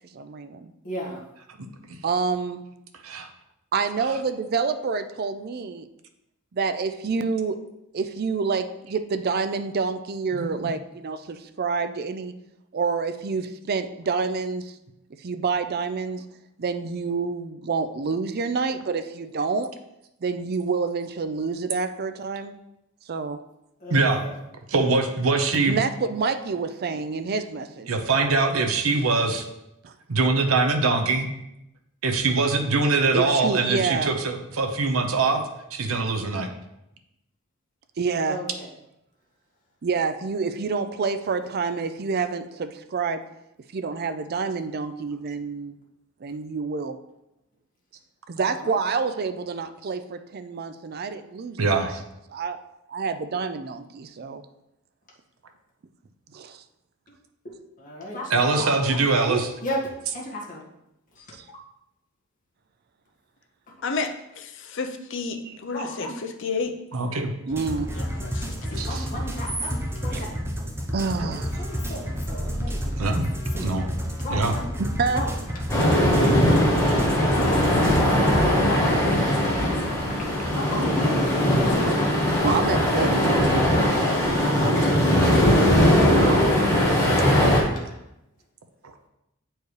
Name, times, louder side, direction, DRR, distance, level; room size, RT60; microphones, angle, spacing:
voice 1, 0.1-0.7 2.0-2.6 3.7-5.9 6.5-7.6 7.9-12.3 12.7-14.7 15.2-16.2 16.6-19.7 20.2-22.5 23.1-23.4 25.6-28.4 29.8-29.9 33.1-34.2 38.0-38.4 39.8-43.2 43.7-45.8 46.2-47.0 48.3-51.9 52.3-52.6 52.9-54.4 56.3-56.6 59.2-59.5 61.4-61.5 65.4-65.6 67.5-67.9 70.1-70.3 70.9-71.6 74.8-75.2 82.4-84.0 84.2-84.5 86.1-86.7, right 4 dB, 50° right, 0.4 m, -28 dB
voice 2, 0.8-1.2 23.8-24.3 38.2-38.7 48.4-48.8 57.4-58.6 59.0-59.1 59.6-59.8 60.1-60.6 61.1-61.3 63.7-63.8 65.7-66.2 68.6-70.4 71.1-73.2 73.5-74.7 75.1-75.3 75.6-75.8 77.1-77.3 77.5-78.8 79.3-79.7 80.5-81.0 81.5-82.1 83.0-83.9 84.4-85.3 86.1-86.6 87.2-88.0, left 1 dB, 40° left, 1.8 m, -35 dB
voice 3, 10.3-10.7 23.9-24.2 24.7-25.8 27.9-29.5 30.1-31.3 32.0-35.4 35.7-36.5 51.6-52.0 58.3-59.5 66.9-67.3 68.8-69.1 73.0-73.3 73.6-73.9 74.3-74.5, right 3 dB, 85° right, 0.8 m, -23 dB
voice 4, 63.8-66.8 67.9-68.9, left 4 dB, 60° left, 0.7 m, -32 dB
sound 1, 67.5-78.3, equal, 10° right, 0.8 m, -30 dB
sound 2, 75.7-87.6, equal, 15° left, 1.4 m, -20 dB
8.3 x 4.5 x 3.2 m
head